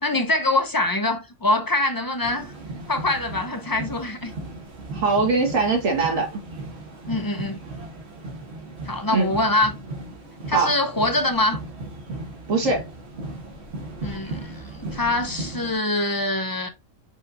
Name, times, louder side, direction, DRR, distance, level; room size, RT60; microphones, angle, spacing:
voice 1, 0.0-2.5 2.9-4.3 7.1-7.6 8.9-9.8 10.5-11.6 14.0-16.7, left 2 dB, 25° left, 0.5 m, -24 dB
sound 1, 2.2-15.8, right 2 dB, 55° right, 1.5 m, -36 dB
voice 2, 4.9-6.3 9.1-9.3 10.5-10.7 12.5-12.9, right 4 dB, 80° right, 1.9 m, -21 dB
4.8 x 4.2 x 2.6 m
omnidirectional pair, 1.3 m